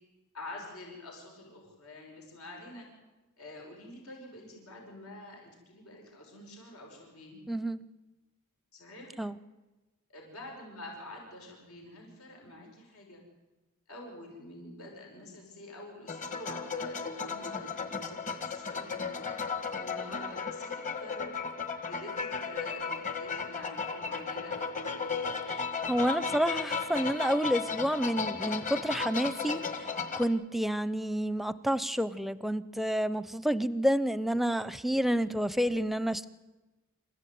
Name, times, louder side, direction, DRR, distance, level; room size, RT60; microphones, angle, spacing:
voice 1, 0.3-2.9 3.4-7.5 8.7-9.2 10.1-13.2 13.9-19.3 19.8-21.3 21.9-25.3, left 2 dB, 75° left, 0 dB, 6.2 m, -48 dB
voice 2, 7.5-7.8 9.2-9.4 25.9-29.9 30.1-36.3, equal, ahead, 16 dB, 0.7 m, -29 dB
sound 1, 16.1-30.3, left 5 dB, 35° left, 1.9 m, -35 dB
27.5 x 15.0 x 9.5 m, 1.1 s
head